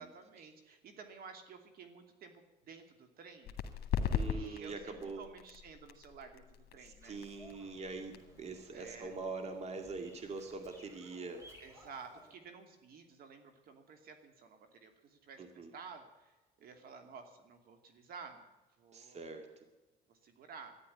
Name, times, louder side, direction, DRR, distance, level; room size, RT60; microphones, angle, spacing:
voice 1, 0.0-3.5 4.3-7.2 8.7-9.2 11.6-18.5 18.8-19.3 20.1-20.8, right 5 dB, 65° right, 6 dB, 2.6 m, -52 dB
sound 1, 3.4-10.8, left 7 dB, 70° left, 2.0 m, -40 dB
voice 2, 4.1-5.2 6.8-11.4 15.4-15.7 18.9-19.5, right 3 dB, 40° right, 6 dB, 2.2 m, -43 dB
Bird vocalization bird call bird song, 7.0-12.4, equal, 15° right, 5.7 m, -60 dB
13.5 x 10.5 x 10.0 m, 1.1 s
cardioid pair, 110°, 17 cm